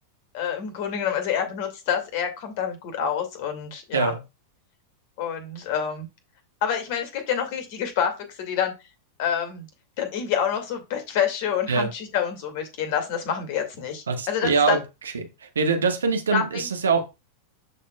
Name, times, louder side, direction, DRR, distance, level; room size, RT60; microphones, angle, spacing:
voice 1, 0.3-4.1 5.2-6.1 6.6-8.1 8.4-8.7 9.2-9.7 10.0-14.8 16.3-16.7, left 8 dB, 50° left, 5 dB, 2.1 m, -27 dB
voice 2, 14.1-14.8 15.1-15.2 15.5-17.0, right 4 dB, 70° right, 6 dB, 1.2 m, -23 dB
12.5 x 4.2 x 2.3 m, 0.25 s
figure-of-eight pair, 90°, 0 cm